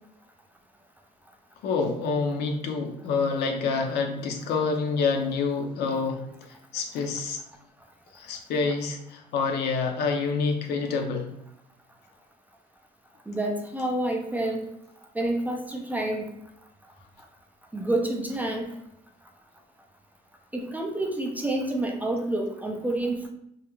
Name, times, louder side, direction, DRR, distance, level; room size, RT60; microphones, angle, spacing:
voice 1, 1.6-6.2 6.7-7.4 8.1-11.3, left 4 dB, 75° left, 0.5 m, -27 dB
voice 2, 13.3-14.7 15.2-16.4 17.7-18.7 20.5-23.3, right 1 dB, 10° right, 0.3 m, -28 dB
2.3 x 2.1 x 2.9 m
cardioid pair, 110°, 17 cm